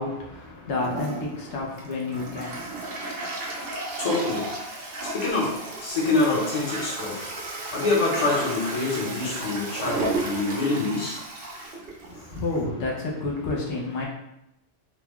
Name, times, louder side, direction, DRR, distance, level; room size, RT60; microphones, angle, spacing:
voice 1, 0.0-2.7 12.0-14.1, left 3 dB, 80° left, -2 dB, 1.0 m, -30 dB
Toilet flush, 0.8-12.6, right 2 dB, 60° right, 0.8 m, -33 dB
voice 2, 4.0-4.5 5.0-7.2 7.7-11.2, left 3 dB, 40° left, -5 dB, 0.9 m, -26 dB
3.0 x 2.2 x 3.5 m, 0.85 s
omnidirectional pair, 1.1 m